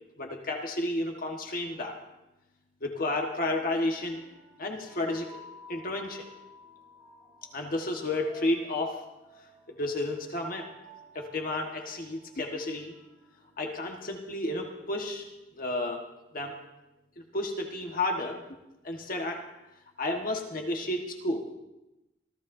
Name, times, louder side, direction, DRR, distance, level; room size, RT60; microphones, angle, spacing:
voice 1, 0.2-2.0 2.8-4.2 4.6-5.4 5.7-6.3 7.5-9.0 9.7-10.7 11.1-12.9 13.6-15.3 15.5-16.0 16.3-16.6 17.2-18.4 18.8-19.4 20.0-21.5, left 2 dB, 50° left, 2 dB, 1.5 m, -32 dB
sound 1, 3.3-14.2, equal, 15° left, 6.7 m, -54 dB
26.0 x 15.0 x 2.7 m, 0.97 s
head